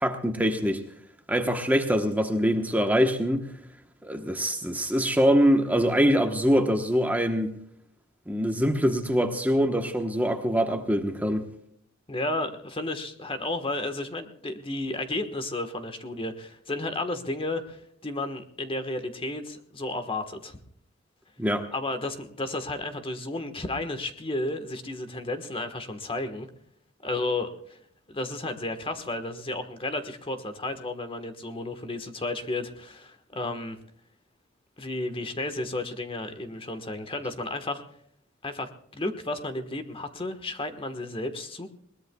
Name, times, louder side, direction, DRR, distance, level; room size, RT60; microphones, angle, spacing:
voice 1, 0.0-0.8 1.3-3.5 4.0-7.5 8.3-11.4 21.4-21.7, equal, 10° right, 5 dB, 1.1 m, -24 dB
voice 2, 12.1-20.6 21.7-26.5 27.0-27.8 28.1-33.8 34.8-37.8 38.4-41.7, left 2 dB, 25° left, 8 dB, 1.4 m, -32 dB
22.0 x 20.0 x 2.3 m, 0.69 s
head